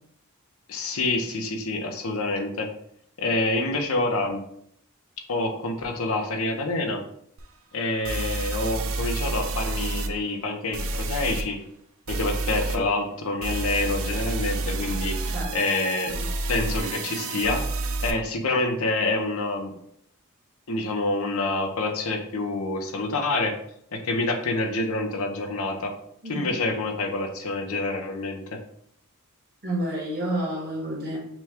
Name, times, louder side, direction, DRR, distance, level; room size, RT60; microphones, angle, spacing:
voice 1, 0.7-2.7 3.2-4.4 5.3-7.0 7.7-11.6 12.1-16.2 16.5-17.7 18.0-19.7 20.7-23.6 23.9-25.9 26.3-28.6, left 2 dB, 70° left, 4 dB, 0.8 m, -27 dB
sound 1, 7.4-7.5 8.0-10.1 10.7-11.4 12.1-12.8 13.4-18.1, right 2 dB, 65° right, 0.6 m, -29 dB
voice 2, 29.6-31.2, right 1 dB, 45° right, -6 dB, 1.6 m, -29 dB
5.9 x 2.3 x 3.5 m, 0.71 s
head